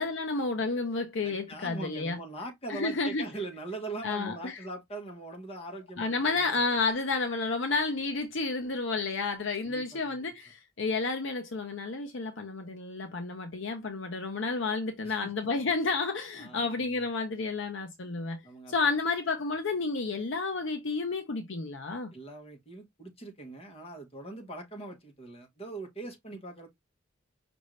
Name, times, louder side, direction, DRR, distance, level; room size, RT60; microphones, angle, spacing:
voice 1, 0.0-2.2 2.7-3.2 4.0-4.6 6.0-18.4 18.7-22.1, left 3 dB, 60° left, 0.7 m, -31 dB
voice 2, 1.2-6.5 9.6-10.3 15.0-15.5 16.4-17.0 18.4-18.7 22.1-26.7, right 2 dB, 30° left, 1.3 m, -42 dB
5.3 x 2.6 x 3.1 m
head